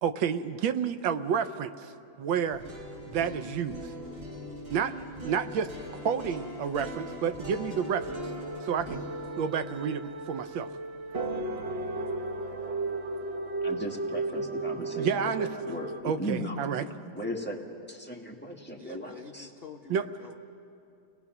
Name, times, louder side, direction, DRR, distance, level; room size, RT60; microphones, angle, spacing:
voice 1, 0.0-1.9 2.2-2.6 3.1-3.8 4.7-4.9 5.2-5.7 6.0-8.1 8.6-9.0 9.4-10.7 15.0-15.5 16.0-16.8 19.9-20.0, right 7 dB, 80° right, 10 dB, 1.5 m, -30 dB
sound 1, 2.4-12.5, equal, 55° right, 6.3 m, -42 dB
sound 2, 7.8-16.0, right 2 dB, 35° right, 1.3 m, -35 dB
voice 2, 13.6-16.6 17.1-17.6 17.9-19.5, equal, 5° left, 0 dB, 1.6 m, -37 dB
voice 3, 18.8-20.3, left 5 dB, 60° left, 3 dB, 0.6 m, -46 dB
30.0 x 19.5 x 6.0 m, 2.6 s
omnidirectional pair, 2.1 m